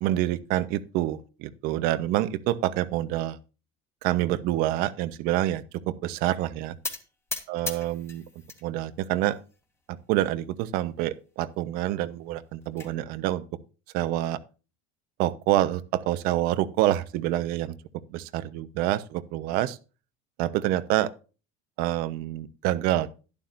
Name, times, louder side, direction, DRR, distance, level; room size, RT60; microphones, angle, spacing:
voice 1, 0.0-3.4 4.0-6.8 7.5-8.2 8.6-9.4 10.1-13.4 13.9-14.4 15.2-17.8 18.1-19.8 20.4-21.1 21.8-23.1, right 14 dB, 65° right, 1.0 m, -27 dB
sound 1, 6.8-8.6 9.0-9.6 10.2-10.3 10.6-10.7 11.0-11.1 12.3-12.9, left 3 dB, 15° left, 1.9 m, -37 dB
12.0 x 11.5 x 2.6 m
cardioid pair, 140°, 16 cm